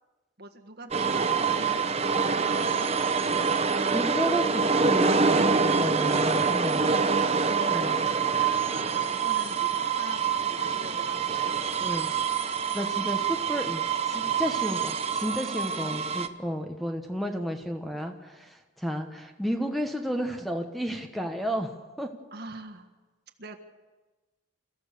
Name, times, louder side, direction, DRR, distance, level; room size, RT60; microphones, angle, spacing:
voice 1, 0.4-3.7 6.8-12.3 15.8-16.0 22.3-22.9 23.4-23.6, right 3 dB, 50° right, 4 dB, 1.6 m, -43 dB
sound 1, 0.9-16.3, right 5 dB, 30° right, 0.8 m, -26 dB
voice 2, 3.9-7.0 7.7-8.0 11.8-12.1 12.7-21.7 22.0-22.1, equal, ahead, 4 dB, 1.2 m, -32 dB
28.5 x 15.0 x 6.8 m, 1.2 s
head